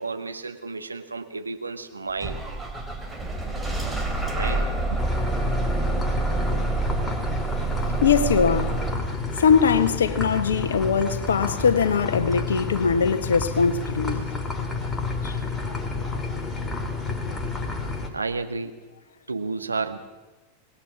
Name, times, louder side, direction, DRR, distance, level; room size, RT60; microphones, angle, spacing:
voice 1, 0.0-2.4 4.3-5.0 18.1-18.7 19.3-20.0, right 4 dB, 80° right, 1.6 m, -31 dB
Bus / Engine starting, 2.2-8.9, right 3 dB, 5° right, 3.4 m, -27 dB
sound 1, 5.0-18.1, left 3 dB, 10° left, 3.2 m, -30 dB
voice 2, 8.0-8.8 9.4-14.3 15.2-15.4, left 6 dB, 65° left, 1.5 m, -21 dB
25.5 x 20.0 x 6.1 m
figure-of-eight pair, 90°, 0 cm